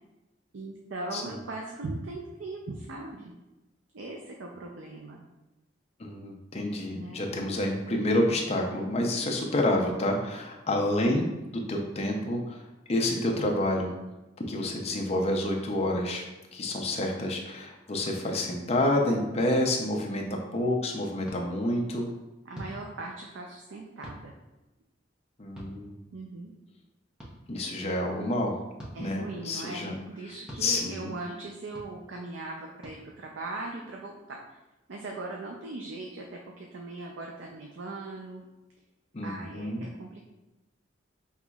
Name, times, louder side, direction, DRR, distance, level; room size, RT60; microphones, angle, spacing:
voice 1, 0.5-3.3 3.9-5.2 6.9-7.2 22.4-24.4 26.1-26.5 28.9-34.6 34.9-38.4 39.2-40.2, right 2 dB, 75° right, 0 dB, 0.5 m, -39 dB
voice 2, 6.0-12.6 12.9-13.9 14.5-16.2 16.5-22.1 25.4-26.0 27.5-28.6 29.0-30.0 30.3-30.4 30.6-31.1 39.1-39.8, left 1 dB, 35° left, 1 dB, 0.6 m, -28 dB
sound 1, 21.2-21.4 22.5-22.8 24.0-24.2 25.6-25.7 27.2-27.3 28.8-29.0 30.5-30.6 31.7-31.9 32.8-33.0, equal, 5° right, 0.8 m, -42 dB
5.5 x 3.0 x 2.3 m, 1.0 s
head